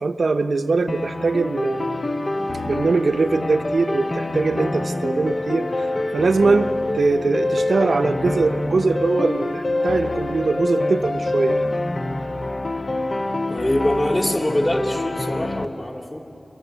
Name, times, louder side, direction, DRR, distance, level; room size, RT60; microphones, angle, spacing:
voice 1, 0.0-2.2 2.7-11.6, right 3 dB, 85° right, 8 dB, 0.8 m, -22 dB
sound 1, 0.9-15.6, left 2 dB, 55° left, 1.0 m, -25 dB
voice 2, 13.5-16.2, left 1 dB, 35° left, 3 dB, 3.0 m, -23 dB
25.0 x 22.5 x 8.2 m, 2.9 s
cardioid pair, 40°, 0 cm